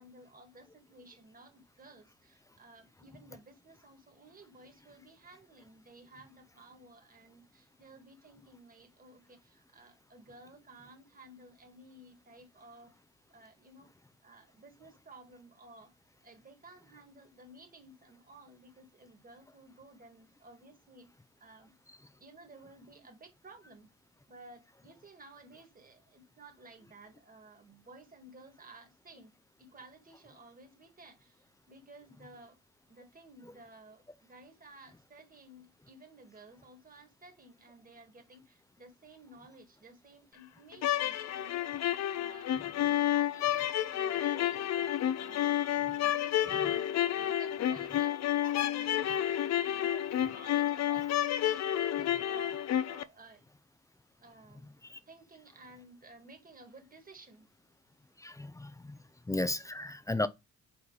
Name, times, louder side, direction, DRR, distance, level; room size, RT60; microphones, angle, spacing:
voice 1, 0.0-13.0 13.3-13.9 14.2-15.9 16.2-21.1 21.4-21.7 22.2-23.9 24.3-32.6 32.9-34.0 34.3-42.6 42.8-45.6 46.0-53.4 54.2-54.8 55.1-57.5 58.6-59.1, right 2 dB, 30° right, 1.7 m, -55 dB
sound 1, 40.7-53.0, left 11 dB, 60° left, 0.5 m, -30 dB
voice 2, 58.2-58.9 59.3-60.3, left 2 dB, 10° left, 0.5 m, -34 dB
4.8 x 4.0 x 4.8 m
cardioid pair, 90°, 30 cm